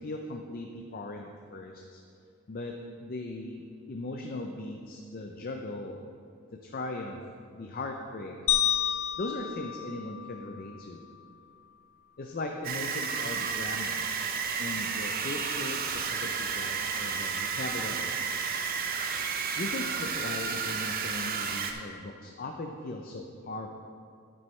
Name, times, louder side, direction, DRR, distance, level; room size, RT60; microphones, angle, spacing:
voice 1, 0.0-2.0 2.5-2.7 3.0-6.0 6.5-7.2 7.5-8.3 9.2-11.0 12.2-14.1 14.6-18.2 19.6-23.7, left 2 dB, 45° left, 3 dB, 0.5 m, -38 dB
sound 1, 8.5-10.8, left 11 dB, 75° left, 0.8 m, -30 dB
sound 2, 12.6-21.7, right 6 dB, 40° right, 0.6 m, -32 dB
9.0 x 9.0 x 3.2 m, 2.3 s
head